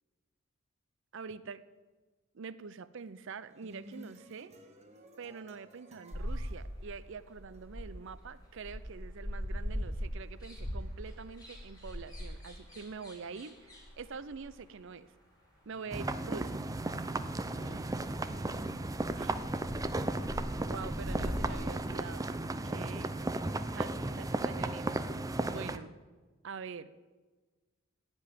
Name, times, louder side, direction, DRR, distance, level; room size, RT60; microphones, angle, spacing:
voice 1, 1.1-1.6 2.3-4.5 5.2-13.7 14.0-15.1 15.7-16.7 19.2-19.3 20.7-22.3 22.6-23.2 23.7-25.1 25.4-25.9 26.4-26.9, right 5 dB, 60° right, 15 dB, 0.6 m, -45 dB
sound 1, 3.5-7.6, right 1 dB, 30° right, 1.3 m, -55 dB
sound 2, 6.1-8.2 8.5-14.5 16.8-16.9 17.3-17.4 17.6-17.7 17.9-18.4 18.7-19.9 20.2-21.6, equal, 20° left, 3.7 m, -40 dB
sound 3, 15.9-25.8, right 2 dB, 15° right, 0.5 m, -35 dB
voice 2, 17.3-19.8, equal, 70° left, -1 dB, 5.1 m, -55 dB
15.0 x 5.3 x 9.3 m, 1.3 s
head